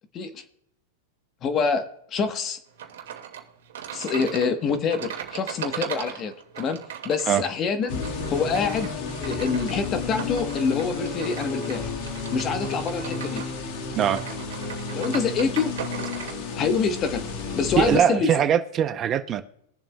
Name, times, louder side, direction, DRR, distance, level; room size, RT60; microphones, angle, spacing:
voice 1, 0.1-0.4 1.4-1.8 2.1-2.6 3.9-8.0 8.3-8.9 9.2-11.9 12.3-13.4 14.9-15.7 16.5-17.2 17.6-18.4, left 5 dB, 30° left, 1.0 m, -26 dB
sound 1, 2.8-16.4, right 9 dB, 80° right, 1.9 m, -38 dB
sound 2, 7.9-18.0, left 4 dB, 55° left, 1.6 m, -32 dB
voice 2, 17.8-19.4, right 9 dB, 25° right, 0.6 m, -21 dB
22.0 x 7.4 x 2.2 m
supercardioid pair, 140°, 0 cm